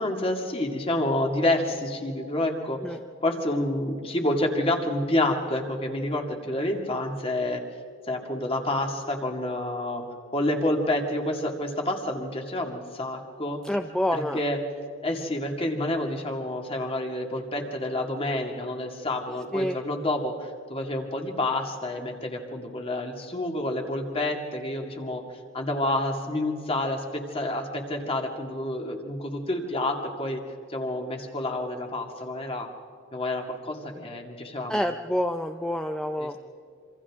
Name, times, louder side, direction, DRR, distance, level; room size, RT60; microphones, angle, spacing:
voice 1, 0.0-2.8 3.2-7.6 8.1-10.0 10.3-13.6 14.1-14.6 15.0-25.2 25.5-30.4 30.7-32.7 33.1-34.9 36.2-36.3, left 1 dB, 30° left, 2 dB, 2.3 m, -28 dB
voice 2, 13.6-14.4 19.5-19.8 34.7-36.4, left 1 dB, 5° left, 6 dB, 0.5 m, -27 dB
27.0 x 26.0 x 3.7 m, 2.4 s
head